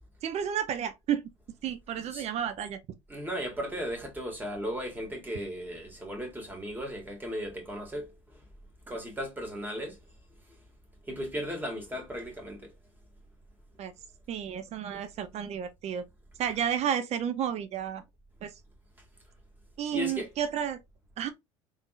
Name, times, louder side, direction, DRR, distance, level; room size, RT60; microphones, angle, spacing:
voice 1, 0.2-1.2 1.6-2.8 13.8-13.9 14.3-16.0 16.4-18.0 18.4-18.5 19.8-20.8 21.2-21.3, right 9 dB, 45° right, 0.7 m, -31 dB
voice 2, 3.1-8.4 8.9-10.0 11.0-12.7 19.9-20.3, equal, 10° right, 2.1 m, -36 dB
3.6 x 3.5 x 2.5 m
hypercardioid pair, 70°, 15 cm